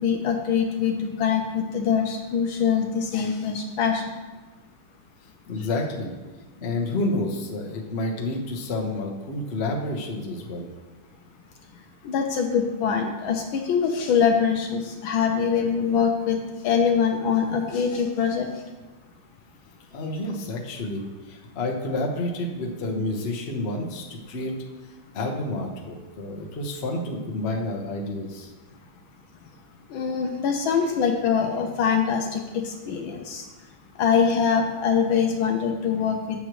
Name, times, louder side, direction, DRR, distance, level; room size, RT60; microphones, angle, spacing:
voice 1, 0.0-4.0 12.0-16.4 16.6-18.5 29.9-33.5 34.0-36.4, left 6 dB, 75° left, 3 dB, 1.3 m, -23 dB
voice 2, 5.5-6.1 6.6-10.7 19.9-24.5 25.1-28.5, left 2 dB, 45° left, 0 dB, 0.9 m, -29 dB
8.1 x 7.2 x 3.1 m, 1.2 s
omnidirectional pair, 2.4 m